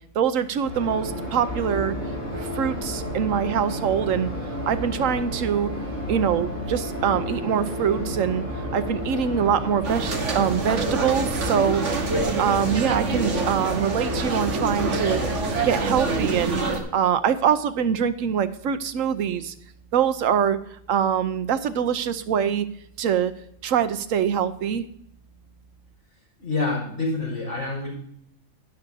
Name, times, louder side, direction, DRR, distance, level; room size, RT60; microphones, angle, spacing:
voice 1, 0.1-1.9 2.3-4.3 4.6-5.7 6.1-8.4 8.7-11.8 12.4-15.2 15.6-16.6 16.9-19.5 19.9-20.6 20.9-22.7 23.0-23.3 23.6-24.9, right 8 dB, 85° right, 12 dB, 1.1 m, -24 dB
sound 1, 0.6-16.4, equal, 25° right, 4.5 m, -31 dB
sound 2, 9.8-16.8, right 3 dB, 65° right, 1.7 m, -27 dB
voice 2, 26.4-27.9, left 3 dB, 85° left, -3 dB, 5.7 m, -27 dB
12.0 x 10.5 x 2.8 m, 0.68 s
omnidirectional pair, 1.3 m